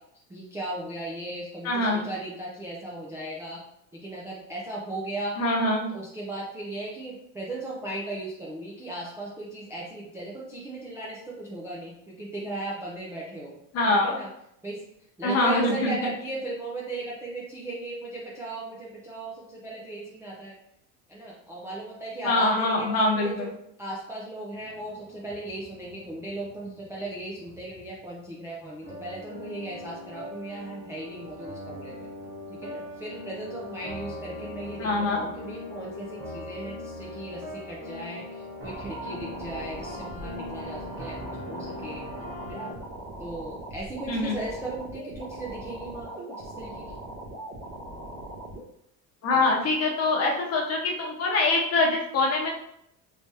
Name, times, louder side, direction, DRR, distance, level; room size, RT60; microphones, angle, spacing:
voice 1, 0.3-3.6 3.9-5.4 5.9-13.6 14.0-14.3 14.6-14.8 15.2-20.5 21.1-23.5 23.8-32.1 32.6-42.0 42.5-42.8 43.2-47.0 49.3-49.4, right 1 dB, 10° right, -6 dB, 0.3 m, -37 dB
voice 2, 1.6-2.0 5.4-5.9 13.7-14.2 15.2-15.9 22.2-23.5 34.8-35.2 44.1-44.4 49.2-52.5, left 2 dB, 40° left, -1 dB, 0.8 m, -24 dB
sound 1, 24.5-28.4 28.8-42.7, left 1 dB, 40° right, 1.4 m, -41 dB
sound 2, 38.6-48.6, right 1 dB, 65° right, 1.2 m, -40 dB
3.3 x 3.2 x 2.7 m, 0.76 s
cardioid pair, 150°, 37 cm